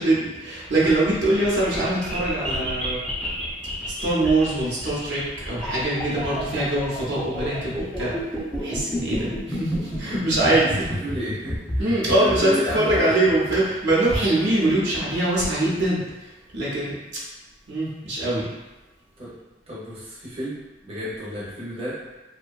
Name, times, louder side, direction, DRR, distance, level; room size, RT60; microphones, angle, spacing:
voice 1, 0.0-3.1 3.8-8.1 8.6-10.9 11.8-17.0 17.7-18.5, right 1 dB, 75° right, -7 dB, 0.7 m, -23 dB
sound 1, 0.6-14.7, equal, 5° left, 0.4 m, -31 dB
voice 2, 10.8-13.2 19.2-19.3 19.7-22.0, equal, 35° right, -8 dB, 0.7 m, -32 dB
2.6 x 2.2 x 2.3 m, 1.1 s
head